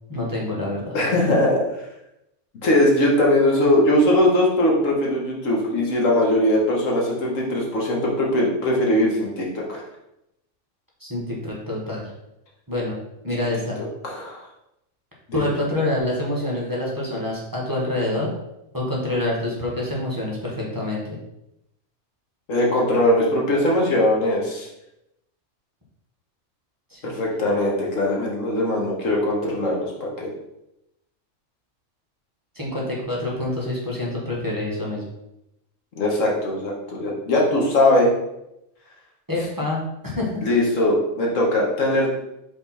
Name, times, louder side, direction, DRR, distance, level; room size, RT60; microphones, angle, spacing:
voice 1, 0.1-1.0 1.2-1.3 11.0-12.1 12.7-12.9 13.2-13.8 15.3-18.3 18.7-21.1 26.9-27.2 32.5-35.1 39.3-40.3, left 1 dB, 15° right, -4 dB, 1.4 m, -26 dB
voice 2, 0.9-1.6 2.6-9.8 13.8-14.5 15.3-15.4 22.5-24.7 27.0-30.3 36.0-38.1 40.4-42.1, left 1 dB, 80° left, -2 dB, 1.7 m, -20 dB
5.2 x 4.3 x 4.2 m, 0.86 s
omnidirectional pair, 1.3 m